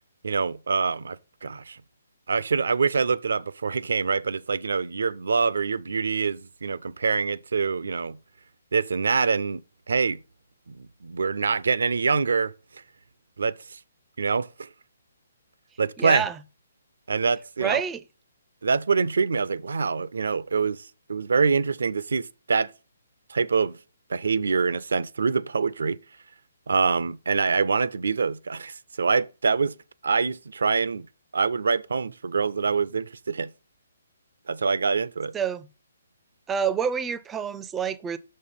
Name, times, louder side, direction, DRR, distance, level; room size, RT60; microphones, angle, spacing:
voice 1, 0.2-1.8 2.3-8.2 8.7-9.6 9.9-10.2 10.7-12.5 13.4-13.8 14.2-14.7 15.8-16.2 17.1-17.8 18.6-20.8 21.1-22.7 23.3-23.8 24.1-26.0 26.7-29.7 30.0-31.1 31.3-33.5 34.5-35.3, right 5 dB, 75° right, 0.5 m, -25 dB
voice 2, 16.0-16.4 17.6-18.0 35.3-35.7 36.5-38.2, right 7 dB, 15° right, 0.5 m, -27 dB
6.3 x 5.4 x 5.6 m
hypercardioid pair, 145°, 0 cm